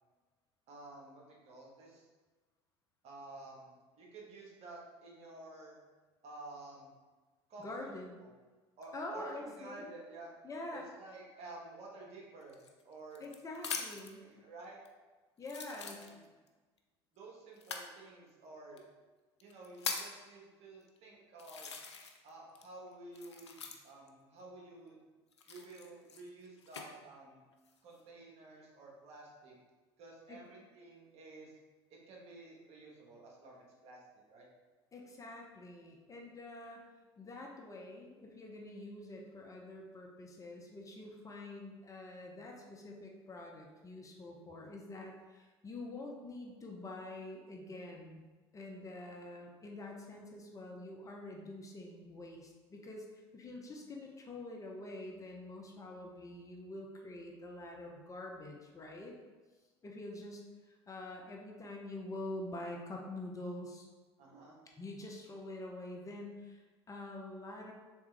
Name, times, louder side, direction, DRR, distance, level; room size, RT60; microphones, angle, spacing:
voice 1, 0.7-2.0 3.0-5.8 6.2-6.9 7.5-7.9 8.2-8.3 8.8-10.3 10.7-13.2 14.2-14.8 15.7-16.2 17.1-18.8 19.4-21.7 22.2-25.0 25.5-27.4 27.8-29.6 30.0-31.6 31.9-34.0 34.3-34.5 64.2-64.6, right 2 dB, 50° right, -2 dB, 1.2 m, -52 dB
voice 2, 7.6-8.2 8.9-9.9 10.4-10.9 13.2-14.3 15.4-16.0 30.3-30.4 34.9-36.8 37.2-48.2 48.5-59.1 59.8-63.9 64.8-67.7, left 2 dB, 25° left, 0 dB, 0.7 m, -46 dB
sound 1, 12.5-14.2 14.9-15.0 15.4-16.5 17.6-17.9 18.8-18.9 19.4-20.2 20.9-21.0 21.4-22.3 22.6-24.1 25.3-26.9 27.5-28.0, left 5 dB, 90° left, 0.4 m, -42 dB
3.6 x 3.3 x 3.2 m, 1.3 s
hypercardioid pair, 70°, 14 cm